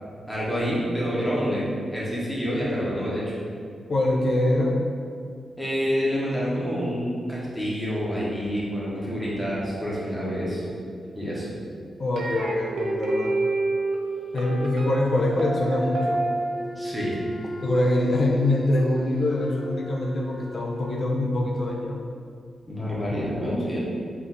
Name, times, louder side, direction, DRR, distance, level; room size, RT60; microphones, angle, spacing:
voice 1, 0.3-1.7 1.9-3.3 5.6-10.6 11.1-11.5 16.8-17.2 22.7-23.8, equal, ahead, -7 dB, 0.8 m, -27 dB
voice 2, 3.9-4.8 12.0-13.4 14.3-16.2 17.6-22.0 23.1-23.2, left 1 dB, 45° left, -1 dB, 0.4 m, -24 dB
sound 1, 12.2-19.3, right 2 dB, 70° right, 0.6 m, -29 dB
Wind instrument woodwind instrument, 16.1-21.1, equal, 20° left, 1.3 m, -42 dB
4.3 x 2.5 x 3.8 m, 2.2 s
wide cardioid pair, 175°, 0 cm